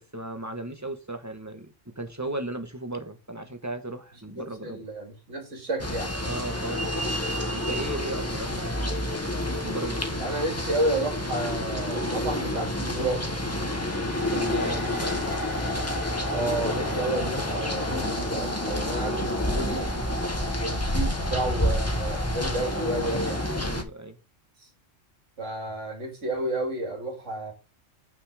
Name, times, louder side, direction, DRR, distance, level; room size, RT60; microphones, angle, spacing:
voice 1, 0.0-4.8 6.2-6.8 7.5-9.0 9.6-10.1 14.2-15.3 23.5-24.2, right 2 dB, 15° right, 1.1 m, -36 dB
voice 2, 4.4-6.1 10.2-13.4 16.3-20.0 20.5-23.4 25.4-27.5, right 2 dB, 75° right, 2.9 m, -31 dB
sound 1, 5.8-23.8, left 1 dB, 15° left, 1.2 m, -29 dB
sound 2, 13.0-23.5, left 2 dB, 70° left, 2.0 m, -37 dB
7.0 x 6.1 x 4.9 m
omnidirectional pair, 1.3 m